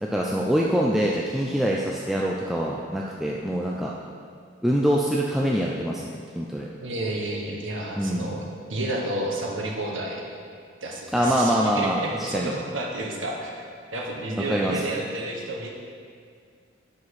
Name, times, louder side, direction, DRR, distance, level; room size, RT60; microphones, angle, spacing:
voice 1, 0.0-3.9 4.6-6.7 8.0-8.3 11.1-12.5 14.5-14.8, equal, ahead, -3 dB, 0.4 m, -24 dB
voice 2, 6.8-8.4 8.7-10.3 10.8-13.6 13.9-15.7, right 1 dB, 85° right, -1 dB, 1.4 m, -31 dB
9.8 x 6.1 x 4.8 m, 2.2 s
head